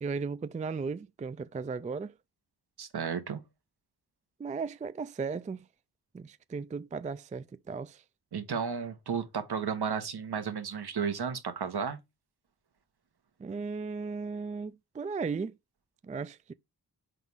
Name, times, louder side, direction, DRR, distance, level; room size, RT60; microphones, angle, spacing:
voice 1, 0.0-2.1 4.4-5.6 6.1-8.0 13.4-15.5 16.0-16.5, right 5 dB, 20° right, 0.3 m, -36 dB
voice 2, 2.8-3.4 8.3-12.0, right 6 dB, 70° right, 1.3 m, -33 dB
4.7 x 3.8 x 5.4 m
cardioid pair, 70°, 41 cm